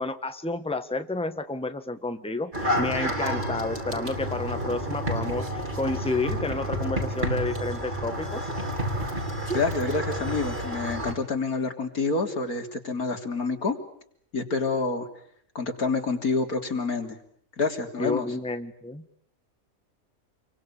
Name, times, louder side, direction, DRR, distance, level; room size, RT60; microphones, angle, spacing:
voice 1, 0.0-8.4 18.0-19.2, left 2 dB, 5° left, 8 dB, 1.5 m, -30 dB
sound 1, 2.5-11.1, equal, 30° right, 5.3 m, -30 dB
voice 2, 9.5-13.8 14.3-15.1 15.6-17.2 17.6-18.3, left 4 dB, 85° left, 4 dB, 3.7 m, -27 dB
28.5 x 23.5 x 8.7 m, 0.64 s
omnidirectional pair, 1.5 m